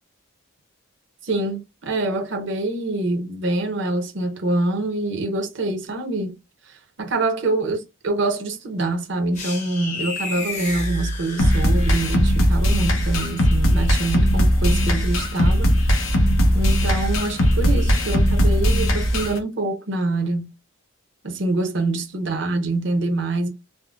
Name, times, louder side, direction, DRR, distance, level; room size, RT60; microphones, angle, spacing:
voice 1, 1.2-6.3 6.7-15.7 16.0-16.1 16.5-20.5 21.2-23.5, right 2 dB, 55° right, 0.7 m, -25 dB
sound 1, 9.3-12.2, left 2 dB, 35° left, 0.8 m, -30 dB
sound 2, 11.4-19.4, equal, 75° left, 0.7 m, -19 dB
3.5 x 2.0 x 2.4 m
head